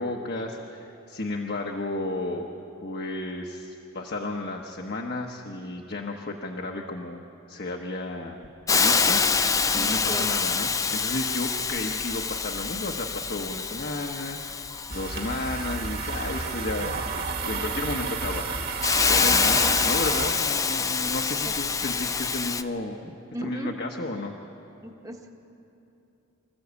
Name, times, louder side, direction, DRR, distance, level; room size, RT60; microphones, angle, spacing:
voice 1, 0.0-2.5 2.8-7.2 7.5-8.4 8.7-9.5 9.7-14.5 14.9-18.4 19.1-23.0 23.4-24.3, left 2 dB, 50° left, 1 dB, 1.1 m, -33 dB
Hiss, 8.7-22.6, left 5 dB, 15° left, 0.4 m, -26 dB
voice 2, 9.8-10.4 19.2-19.8 21.4-21.5 23.3-23.7 24.8-25.3, equal, 15° right, 2 dB, 1.1 m, -36 dB
sound 1, 14.9-20.3, right 4 dB, 50° right, 1.8 m, -31 dB
25.5 x 14.5 x 8.3 m, 2.9 s
head